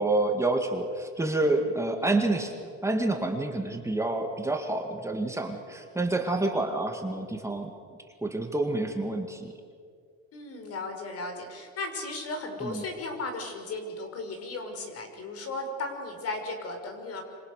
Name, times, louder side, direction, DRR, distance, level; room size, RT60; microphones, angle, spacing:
voice 1, 0.0-2.5 2.8-7.7 8.2-9.5 12.6-12.8, right 2 dB, 10° right, 3 dB, 2.0 m, -28 dB
voice 2, 10.3-17.2, left 2 dB, 55° left, 5 dB, 5.4 m, -36 dB
27.0 x 26.5 x 6.6 m, 2.2 s
cardioid pair, 125°, 29 cm